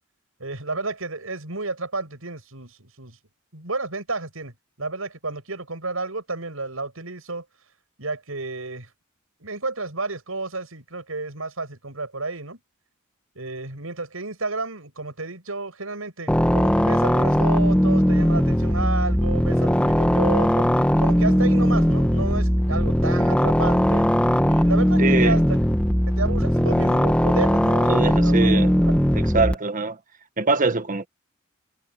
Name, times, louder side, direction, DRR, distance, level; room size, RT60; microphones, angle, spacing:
voice 1, 0.4-3.2 3.5-7.4 8.0-8.9 9.4-12.6 13.3-20.7 21.0-24.1 24.5-25.6 26.1-29.0, right 3 dB, 85° right, 6.8 m, -31 dB
sound 1, 16.3-29.5, equal, 5° left, 1.5 m, -19 dB
voice 2, 25.0-25.4 27.9-28.7 29.1-30.0 30.4-31.1, right 3 dB, 40° right, 1.5 m, -23 dB
head